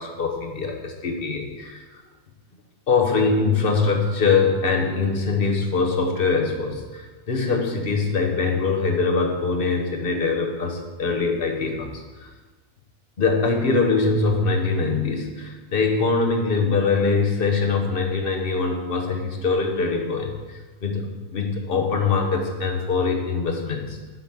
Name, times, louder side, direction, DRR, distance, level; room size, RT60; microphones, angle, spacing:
voice 1, 0.0-2.0 2.9-12.3 13.2-24.0, left 4 dB, 45° left, 2 dB, 1.0 m, -23 dB
7.9 x 4.0 x 5.7 m, 1.3 s
omnidirectional pair, 1.5 m